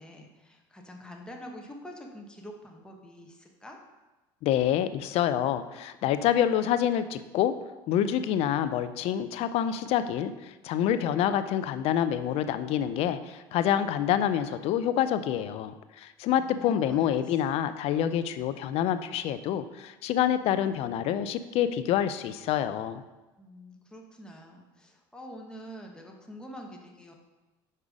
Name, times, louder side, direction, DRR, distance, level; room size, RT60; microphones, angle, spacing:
voice 1, 0.0-3.8 16.4-17.1 17.4-17.5 23.4-27.1, equal, 5° left, 1 dB, 1.2 m, -45 dB
voice 2, 4.4-7.5 7.9-23.0, left 10 dB, 60° left, 12 dB, 0.4 m, -27 dB
5.5 x 4.9 x 4.8 m, 1.1 s
supercardioid pair, 90°, 12 cm